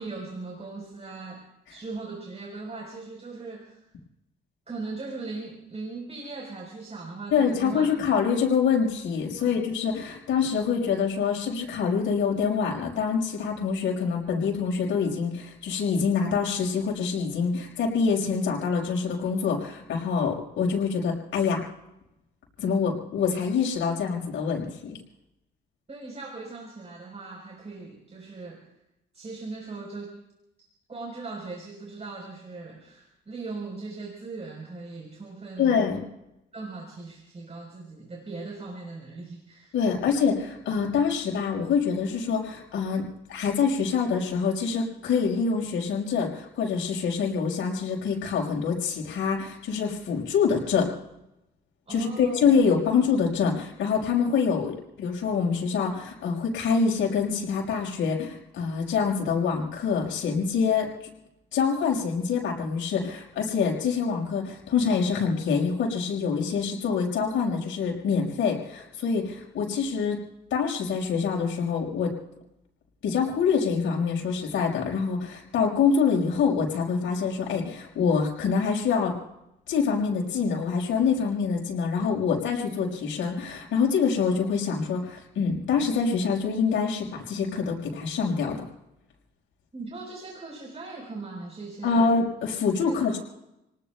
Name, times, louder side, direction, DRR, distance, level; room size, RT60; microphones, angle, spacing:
voice 1, 0.0-1.4 1.7-3.8 4.7-7.9 9.4-9.6 25.9-28.7 29.1-30.2 30.9-35.8 36.5-39.7 51.9-52.5 89.7-92.1 92.8-93.2, right 3 dB, 35° right, 0 dB, 4.4 m, -39 dB
voice 2, 7.3-21.6 22.6-25.0 35.6-36.0 39.7-50.9 51.9-60.9 61.5-70.2 70.5-72.1 73.0-79.1 79.7-88.6 91.8-93.2, left 5 dB, 75° left, 0 dB, 5.6 m, -25 dB
30.0 x 19.0 x 2.3 m, 0.88 s
cardioid pair, 90°, 20 cm